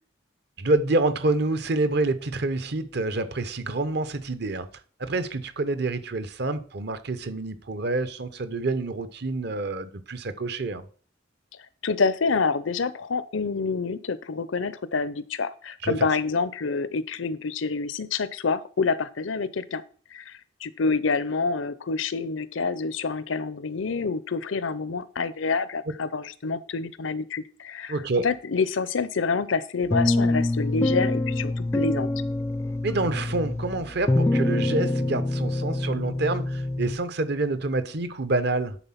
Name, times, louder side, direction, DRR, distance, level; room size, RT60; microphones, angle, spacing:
voice 1, 0.6-4.7 5.0-10.9 15.8-16.1 27.9-28.3 32.8-38.8, right 2 dB, 60° right, 0.9 m, -27 dB
voice 2, 11.8-19.8 20.1-20.3 20.6-28.0 28.2-32.1, left 4 dB, 85° left, 0.6 m, -27 dB
sound 1, 29.9-37.0, left 2 dB, 15° left, 0.3 m, -25 dB
10.0 x 4.2 x 5.7 m
head